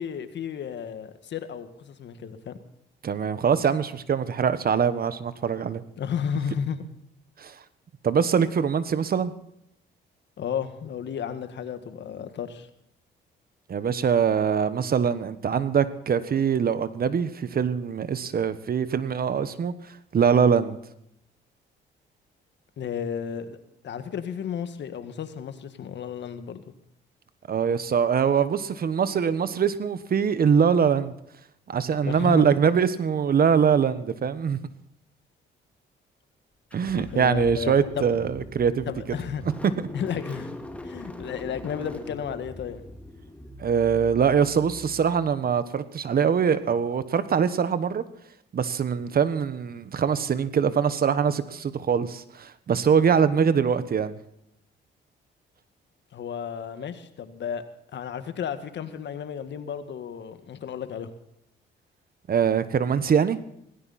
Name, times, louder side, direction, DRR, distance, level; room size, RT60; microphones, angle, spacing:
voice 1, 0.0-2.6 6.0-6.8 10.4-12.7 22.8-23.6 23.8-26.7 32.0-32.5 37.1-38.0 38.9-39.4 39.9-40.6 40.8-42.8 56.1-57.6 57.9-61.1, left 8 dB, 65° left, 10 dB, 1.8 m, -33 dB
voice 2, 3.0-5.8 7.4-7.5 8.0-9.3 13.7-19.7 20.1-20.8 27.5-31.1 31.7-34.6 36.7-38.9 43.6-48.0 48.5-54.2 62.3-63.4, right 7 dB, 50° right, 13 dB, 1.3 m, -23 dB
Car / Engine starting, 36.7-45.5, left 1 dB, 5° left, 2.2 m, -42 dB
18.0 x 16.5 x 4.3 m, 0.75 s
cardioid pair, 90°, 20 cm